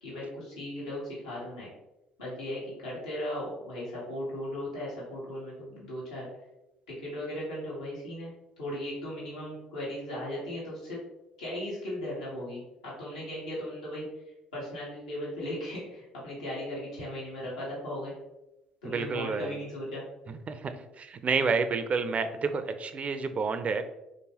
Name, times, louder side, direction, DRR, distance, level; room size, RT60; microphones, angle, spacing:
voice 1, 0.0-1.7 2.2-6.3 6.9-8.3 8.6-11.0 11.4-14.0 14.5-18.1 18.8-20.0, left 1 dB, 90° left, -7 dB, 1.2 m, -37 dB
voice 2, 18.8-19.6 20.3-23.8, right 4 dB, 40° right, 10 dB, 0.4 m, -30 dB
3.2 x 3.0 x 2.8 m, 0.92 s
hypercardioid pair, 55°, 3 cm